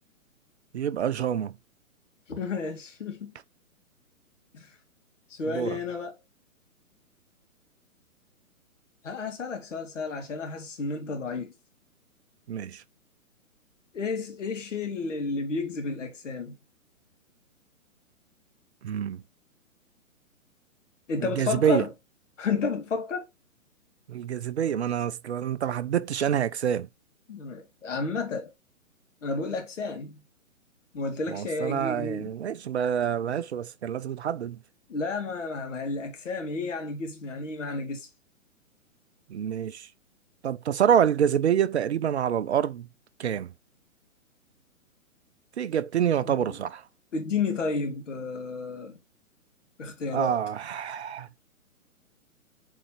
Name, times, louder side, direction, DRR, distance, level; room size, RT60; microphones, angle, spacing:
voice 1, 0.7-1.5 5.4-5.8 12.5-12.8 18.8-19.2 21.2-21.8 24.1-26.9 31.3-34.6 39.3-39.9 40.4-42.9 43.2-43.5 45.6-46.8 50.1-51.3, right 9 dB, 50° right, 0.7 m, -27 dB
voice 2, 2.3-3.3 4.5-4.7 5.3-6.1 9.0-11.5 13.9-16.6 21.1-21.9 22.4-23.3 27.3-28.5 29.2-30.2 30.9-32.3 34.9-38.1 46.2-46.6 47.1-49.0 49.8-50.3, left 4 dB, 60° left, 2.5 m, -31 dB
7.7 x 4.2 x 3.2 m
figure-of-eight pair, 130°, 42 cm